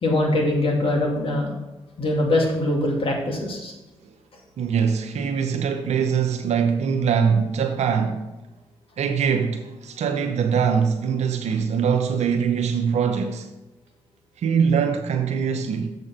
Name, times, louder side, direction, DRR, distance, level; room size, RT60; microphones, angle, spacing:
voice 1, 0.0-1.5 2.0-3.7, left 1 dB, 50° left, 2.4 m, -22 dB
voice 2, 4.6-8.2 9.0-13.5 14.4-15.9, right 6 dB, 65° right, 0.8 m, -22 dB
7.4 x 5.4 x 5.9 m
hypercardioid pair, 45°, 12 cm